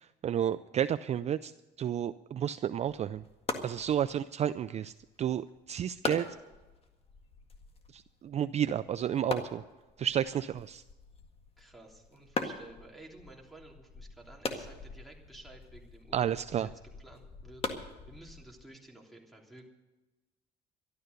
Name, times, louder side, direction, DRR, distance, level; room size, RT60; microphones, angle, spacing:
voice 1, 0.2-1.5 1.8-3.2 3.6-4.9 5.2-6.3 7.9-9.6 10.0-10.8 16.1-16.7, right 10 dB, 40° right, 13 dB, 0.4 m, -31 dB
sound 1, 2.8-18.6, left 4 dB, 35° left, 1.8 m, -42 dB
voice 2, 11.6-19.7, right 2 dB, ahead, 1 dB, 3.2 m, -53 dB
12.5 x 12.5 x 6.7 m, 1.1 s
cardioid pair, 110°, 17 cm